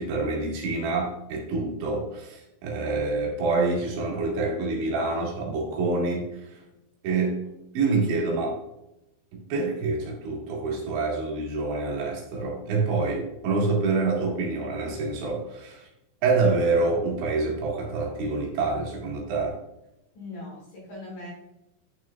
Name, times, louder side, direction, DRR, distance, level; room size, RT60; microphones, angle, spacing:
voice 1, 0.0-6.6 7.0-7.4 7.7-8.6 9.3-15.9 16.2-19.6, right 3 dB, 70° right, -2 dB, 4.0 m, -27 dB
voice 2, 20.1-21.3, left 2 dB, 45° left, -4 dB, 3.3 m, -40 dB
10.5 x 6.1 x 2.3 m, 0.89 s
omnidirectional pair, 5.7 m